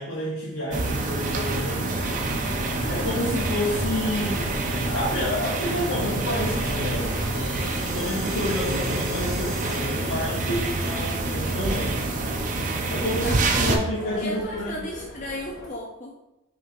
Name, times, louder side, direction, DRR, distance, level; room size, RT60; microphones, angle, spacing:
voice 1, 0.0-2.0 2.9-4.5 4.8-7.1 7.9-12.0 12.9-14.8, left 1 dB, 70° left, -6 dB, 0.9 m, -29 dB
sound 1, 0.7-13.8, right 2 dB, 35° right, 0.4 m, -27 dB
sound 2, 1.9-9.8, equal, ahead, 1.3 m, -35 dB
sound 3, 6.2-15.7, left 1 dB, 85° left, 1.5 m, -40 dB
voice 2, 14.2-16.2, left 1 dB, 35° left, -2 dB, 0.4 m, -34 dB
5.5 x 2.9 x 2.5 m, 0.92 s
head